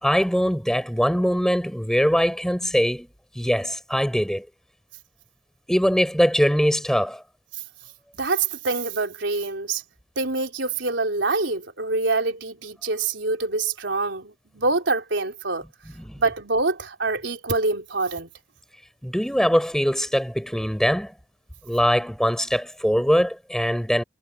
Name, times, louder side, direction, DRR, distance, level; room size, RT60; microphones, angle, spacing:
voice 1, 0.0-3.1 3.4-4.5 5.7-7.2 16.0-16.2 19.0-21.1 21.6-24.0, equal, 5° left, 5.3 m, -22 dB
voice 2, 8.2-9.8 10.2-15.6 16.2-18.3, right 3 dB, 85° right, 3.8 m, -25 dB
head